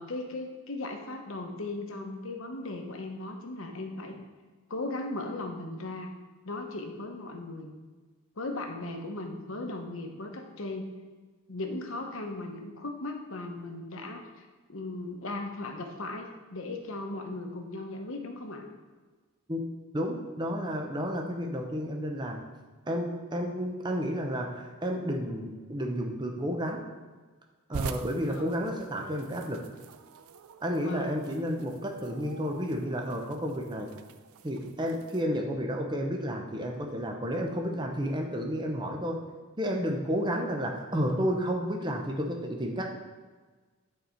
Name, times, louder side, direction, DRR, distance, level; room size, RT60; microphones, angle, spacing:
voice 1, 0.0-4.2 4.7-6.1 6.4-7.7 8.4-10.9 11.5-14.4 14.7-18.7 28.3-28.6 30.8-31.1, left 2 dB, 65° left, 4 dB, 1.0 m, -37 dB
voice 2, 19.9-22.4 22.9-26.8 27.7-29.7 30.6-33.9 34.4-39.2 39.6-43.0, equal, 20° right, 2 dB, 0.8 m, -31 dB
sound 1, 27.7-35.3, right 6 dB, 80° right, 0.4 m, -45 dB
9.7 x 4.2 x 4.5 m, 1.3 s
head